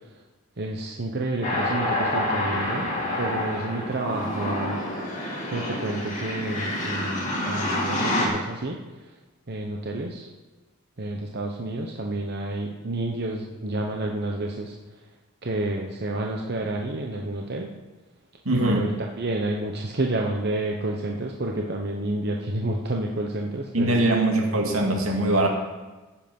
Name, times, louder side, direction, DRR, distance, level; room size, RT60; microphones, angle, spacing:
voice 1, 0.6-2.9 3.2-4.8 5.5-8.8 9.5-10.3 11.0-14.7 15.4-17.7 18.5-18.9 19.2-24.1, right 2 dB, 50° right, 1 dB, 0.9 m, -29 dB
sound 1, 1.4-8.3, left 1 dB, 35° left, 2.6 m, -28 dB
voice 2, 18.4-18.9 23.7-25.5, right 1 dB, 85° right, 1 dB, 2.4 m, -22 dB
14.5 x 7.3 x 5.4 m, 1.2 s
head